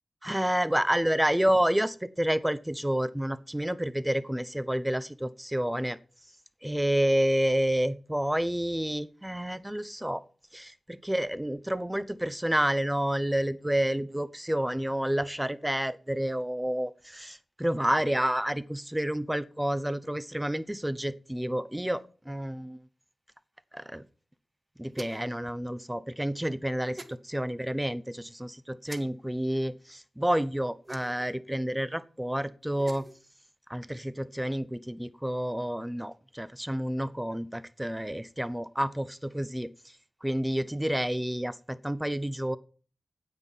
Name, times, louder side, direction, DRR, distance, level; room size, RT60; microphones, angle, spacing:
voice 1, 0.2-6.0 6.6-10.2 10.5-22.8 23.7-24.0 24.8-33.1 33.7-39.7 40.2-42.6, equal, 10° right, 16 dB, 0.9 m, -29 dB
sound 1, 24.9-25.3 26.9-27.2 28.9-29.0 30.8-31.3 32.6-33.2, right 2 dB, 35° right, 1.7 m, -44 dB
9.7 x 8.2 x 7.3 m, 0.41 s
cardioid pair, 55°, 0 cm